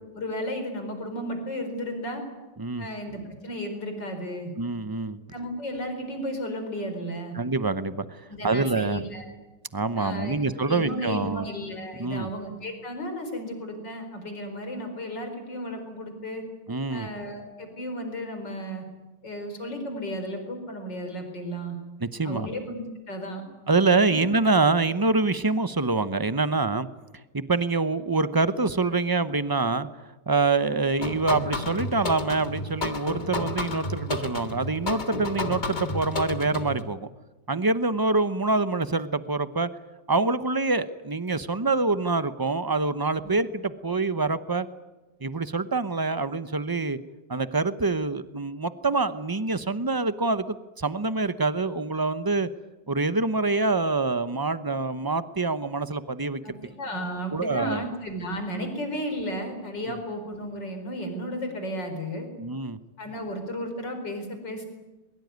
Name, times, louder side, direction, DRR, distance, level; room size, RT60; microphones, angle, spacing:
voice 1, 0.1-2.2 2.8-4.5 5.3-7.4 8.3-9.2 10.0-10.4 10.7-16.4 16.9-18.9 19.2-21.8 22.2-23.4 24.1-24.3 43.2-43.4 56.4-62.3 63.0-64.6, equal, 85° left, 6 dB, 5.2 m, -34 dB
voice 2, 4.6-5.2 7.3-9.0 9.7-11.5 12.0-12.3 16.7-17.1 22.0-22.5 23.7-26.9 27.3-29.9 30.3-37.1 37.5-39.7 40.1-44.7 45.2-47.0 47.3-52.5 52.9-56.4 57.3-57.8 59.9-60.0 62.4-62.8, right 3 dB, 25° right, 13 dB, 0.5 m, -25 dB
sound 1, 31.0-36.8, left 2 dB, 25° left, 1.8 m, -31 dB
22.5 x 22.5 x 9.5 m, 1.1 s
omnidirectional pair, 1.9 m